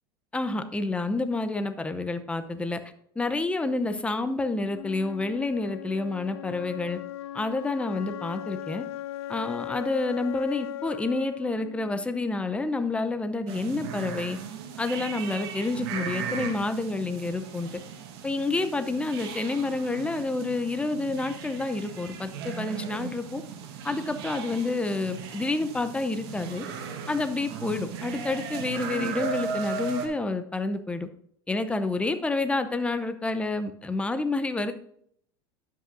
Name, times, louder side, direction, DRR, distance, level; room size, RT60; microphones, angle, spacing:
voice 1, 0.3-2.8 3.2-7.0 7.3-8.8 9.3-14.4 14.8-17.7 18.2-23.4 23.8-26.7 27.1-31.1 31.5-34.7, left 3 dB, 10° left, 10 dB, 0.6 m, -29 dB
Wind instrument woodwind instrument, 4.7-12.7, left 13 dB, 80° left, 0.4 m, -38 dB
sound 1, 13.5-30.1, right 6 dB, 70° right, 1.4 m, -37 dB
12.0 x 5.5 x 2.6 m, 0.67 s
hypercardioid pair, 100°, 13 cm